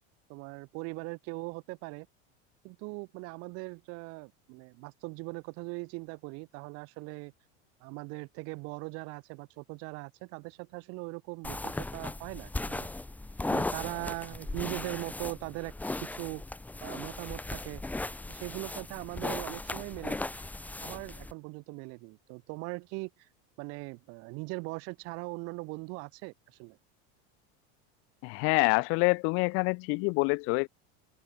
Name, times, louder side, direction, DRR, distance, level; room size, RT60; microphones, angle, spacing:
voice 1, 0.3-2.1 2.6-7.3 7.8-12.9 13.5-15.7 16.0-16.4 16.8-17.8 18.3-20.3 20.8-23.3 23.6-26.8, right 29 dB, 45° right, 6.3 m, -40 dB
sound 1, 11.4-21.3, left 2 dB, 5° left, 4.7 m, -37 dB
voice 2, 28.2-30.7, left 31 dB, 40° left, 1.2 m, -26 dB
open air
supercardioid pair, 175°, 33 cm